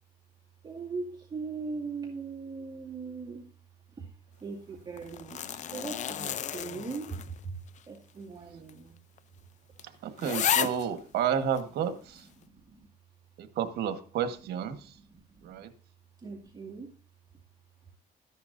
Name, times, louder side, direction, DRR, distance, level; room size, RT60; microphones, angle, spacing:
voice 1, 0.6-3.5 3.9-4.1 4.4-7.6 7.9-9.0 10.8-11.2 11.6-12.9 14.4-15.7 16.2-17.0, right 4 dB, 25° right, -1 dB, 2.2 m, -41 dB
sound 1, 5.0-7.4 7.8-7.9 8.7-8.8 9.2-9.3 9.8-9.9 10.2-10.9 11.6-11.7, left 9 dB, 45° left, 0.5 m, -32 dB
voice 2, 10.0-11.9 13.4-14.8 15.4-15.7, right 8 dB, 75° right, 9 dB, 1.4 m, -30 dB
13.5 x 10.0 x 2.6 m, 0.42 s
cardioid pair, 110°, 17 cm